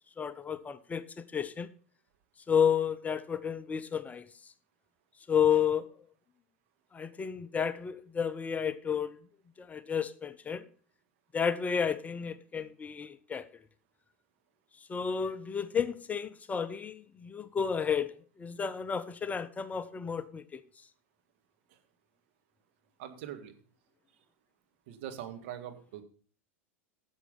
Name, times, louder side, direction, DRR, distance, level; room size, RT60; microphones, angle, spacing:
voice 1, 0.2-1.7 2.5-4.3 5.3-5.9 6.9-9.2 9.6-10.6 11.3-13.5 14.9-20.6, left 7 dB, 20° left, 0.6 m, -31 dB
voice 2, 23.0-23.5 24.9-26.0, right 10 dB, 60° right, 1.8 m, -42 dB
11.0 x 7.2 x 5.3 m
figure-of-eight pair, 90°, 8 cm